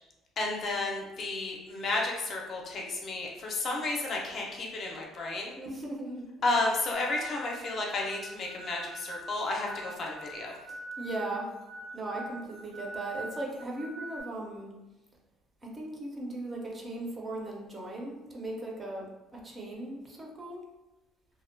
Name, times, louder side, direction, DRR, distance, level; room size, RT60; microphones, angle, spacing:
voice 1, 0.4-5.5 6.4-10.5, left 2 dB, 40° left, -1 dB, 0.4 m, -32 dB
voice 2, 5.6-6.6 10.7-11.5 11.9-14.7 15.7-19.1 19.4-20.6, right 2 dB, 20° right, -2 dB, 0.4 m, -38 dB
sound 1, 6.9-14.2, right 1 dB, 75° right, 0.7 m, -44 dB
2.5 x 2.1 x 2.5 m, 1.0 s
cardioid pair, 150°, 0 cm